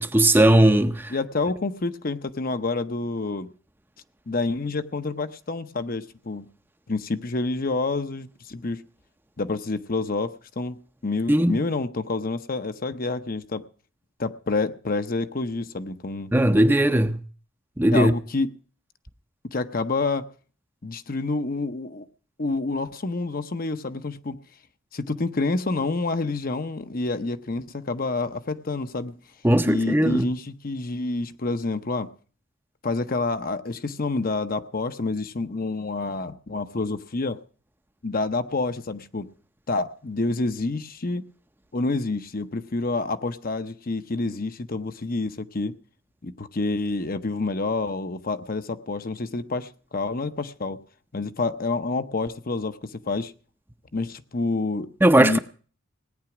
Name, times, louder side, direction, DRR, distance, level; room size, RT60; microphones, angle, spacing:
voice 1, 0.0-1.1 11.3-11.6 16.3-17.2 17.8-18.1 29.4-30.3 55.0-55.4, right 1 dB, 10° right, 0.6 m, -18 dB
voice 2, 1.1-3.5 4.3-6.5 6.9-8.8 9.4-13.6 14.2-16.3 17.9-18.5 19.5-20.3 20.8-22.1 22.4-24.4 24.9-29.1 29.6-32.1 32.8-37.4 38.0-39.3 39.7-41.2 41.7-45.7 46.2-50.8 51.1-53.3 53.9-55.4, left 3 dB, 45° left, 0.8 m, -28 dB
18.0 x 9.6 x 6.0 m
head